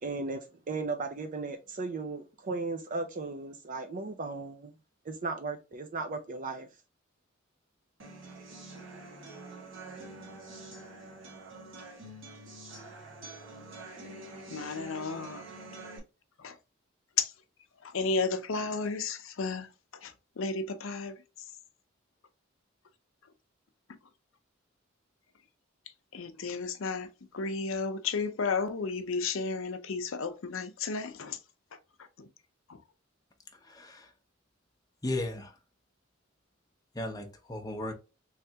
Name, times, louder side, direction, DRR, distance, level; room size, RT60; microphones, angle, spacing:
voice 1, 0.0-4.7 5.0-6.7, right 3 dB, 40° right, 0.5 m, -36 dB
sound 1, 8.0-16.0, right 2 dB, 70° right, 1.4 m, -46 dB
voice 2, 14.5-15.4 16.4-16.5 17.2-17.3 17.9-19.7 20.0-20.1 20.4-21.1 26.1-27.1 27.3-31.4 32.2-32.3, left 4 dB, 75° left, 0.6 m, -32 dB
voice 3, 33.7-34.0 35.0-35.5 37.0-37.9, left 1 dB, 20° left, 0.8 m, -35 dB
3.4 x 3.3 x 2.7 m
head